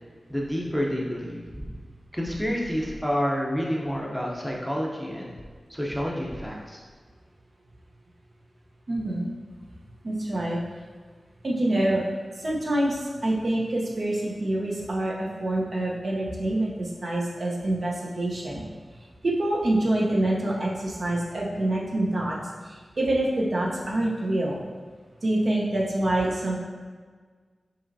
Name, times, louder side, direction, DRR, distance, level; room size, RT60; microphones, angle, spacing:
voice 1, 0.3-1.7 2.1-5.4 5.7-6.8, equal, ahead, -3 dB, 0.7 m, -29 dB
voice 2, 8.9-9.3 10.0-10.6 11.4-12.0 12.4-18.6 19.2-22.4 22.6-24.6 25.2-26.6, right 1 dB, 60° right, -4 dB, 0.9 m, -26 dB
5.6 x 3.0 x 2.7 m, 1.5 s
wide cardioid pair, 80°, 0 cm